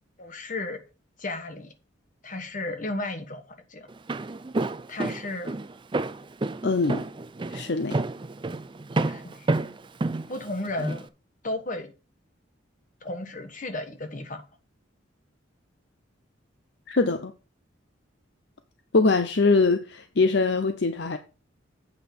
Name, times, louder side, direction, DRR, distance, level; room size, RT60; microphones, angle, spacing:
voice 1, 0.2-0.8 1.2-1.7 2.2-3.9 4.9-5.5 9.0-9.5 10.3-11.1 11.4-11.9 13.0-14.4, left 2 dB, 40° left, 1.3 m, -33 dB
Walk footsteps, 3.9-11.0, right 2 dB, 25° right, 0.4 m, -29 dB
voice 2, 6.6-7.0 7.5-8.0 16.9-17.3 18.9-21.2, left 3 dB, 60° left, 0.7 m, -23 dB
8.3 x 5.3 x 5.8 m
head